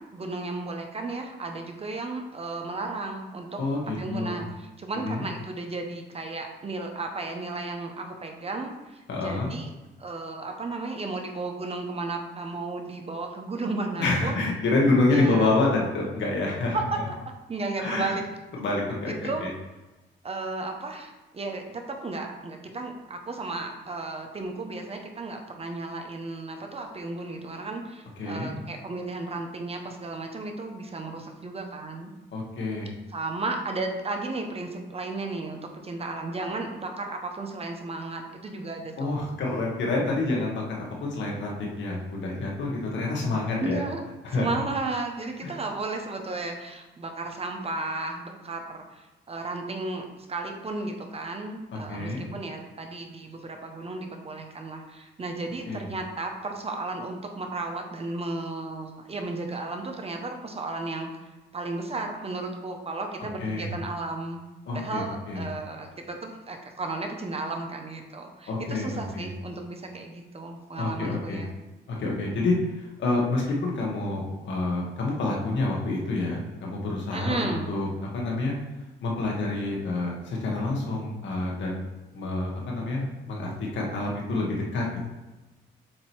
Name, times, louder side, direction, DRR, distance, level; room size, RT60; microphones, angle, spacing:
voice 1, 0.0-3.6 4.0-9.7 10.0-14.4 15.1-15.5 16.7-17.0 17.5-18.2 19.2-19.4 20.2-32.1 33.1-39.2 43.6-44.0 44.3-64.4 64.7-71.5 77.1-77.8, right 3 dB, 30° right, 3 dB, 0.9 m, -34 dB
voice 2, 3.6-4.4 4.9-5.3 9.1-9.5 14.0-16.8 17.8-18.1 18.5-19.5 28.2-28.6 32.3-32.9 39.0-43.8 44.2-44.6 45.4-45.5 51.7-52.2 55.6-55.9 63.4-63.7 64.6-65.0 65.3-65.5 68.5-69.3 70.8-71.4 71.9-77.9 78.1-78.5 79.0-81.8 82.1-85.1, left 2 dB, 70° left, -2 dB, 1.7 m, -28 dB
7.6 x 2.9 x 4.5 m, 1.1 s
cardioid pair, 90°, 20 cm